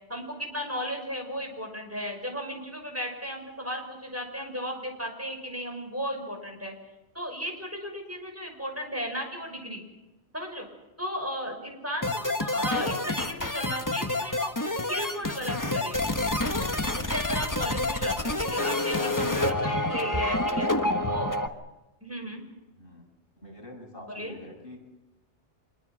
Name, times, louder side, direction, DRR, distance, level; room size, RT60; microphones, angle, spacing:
voice 1, 0.1-6.7 7.1-9.8 10.3-10.7 11.0-16.0 16.9-20.7 21.1-21.4 22.0-22.4 24.0-24.4, equal, 10° right, 2 dB, 6.1 m, -35 dB
sound 1, 12.0-21.5, left 2 dB, 15° left, 1.3 m, -28 dB
voice 2, 18.9-19.5 20.3-21.2 22.2-22.3 22.7-23.1 23.4-24.8, left 2 dB, 50° left, 0 dB, 7.3 m, -42 dB
26.5 x 23.0 x 6.3 m, 1.0 s
omnidirectional pair, 1.2 m